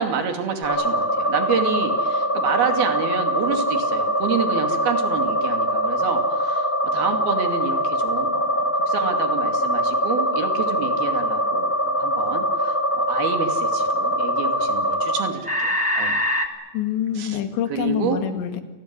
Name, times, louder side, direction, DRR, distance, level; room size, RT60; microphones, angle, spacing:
voice 1, 0.0-16.2 17.1-17.4 17.7-18.2, right 6 dB, 60° right, 6 dB, 4.2 m, -28 dB
sound 1, 0.6-16.5, equal, 15° left, 0.4 m, -23 dB
voice 2, 16.7-18.6, left 9 dB, 80° left, 8 dB, 4.2 m, -26 dB
29.0 x 19.0 x 9.6 m, 1.2 s
omnidirectional pair, 5.1 m